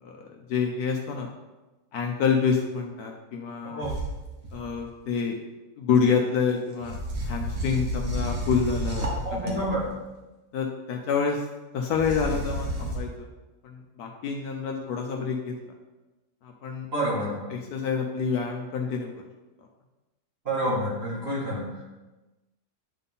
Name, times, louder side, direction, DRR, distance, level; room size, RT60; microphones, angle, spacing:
voice 1, 0.0-1.3 1.9-3.9 4.5-5.4 5.8-7.0 7.2-9.6 10.5-11.5 11.7-13.3 13.6-15.7 16.4-16.9 17.5-19.1, left 6 dB, 70° left, 1 dB, 1.2 m, -28 dB
sound 1, 3.8-4.8 6.8-9.9 11.9-13.0, right 1 dB, 55° right, 1.7 m, -31 dB
voice 2, 9.2-9.9 16.9-17.5 20.4-21.8, right 1 dB, 40° right, -6 dB, 2.3 m, -28 dB
9.8 x 4.1 x 3.7 m, 1.1 s
omnidirectional pair, 1.7 m